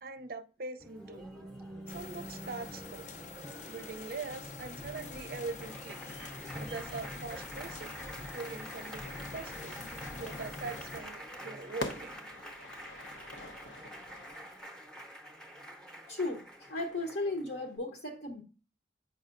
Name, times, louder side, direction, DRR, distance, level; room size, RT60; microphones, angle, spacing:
voice 1, 0.0-1.3 1.9-3.0 3.7-6.0 6.5-7.9 8.3-9.0 9.3-9.8 10.1-12.1, right 4 dB, 50° right, 11 dB, 0.5 m, -42 dB
Applause, 0.8-17.8, right 1 dB, 5° left, 0.7 m, -47 dB
sound 1, 1.9-11.0, left 3 dB, 40° left, 0.5 m, -45 dB
Fire / Fireworks, 9.0-14.6, left 2 dB, 85° left, 0.8 m, -46 dB
voice 2, 16.1-18.4, left 2 dB, 60° left, 1 dB, 0.9 m, -35 dB
7.8 x 5.4 x 2.5 m, 0.36 s
head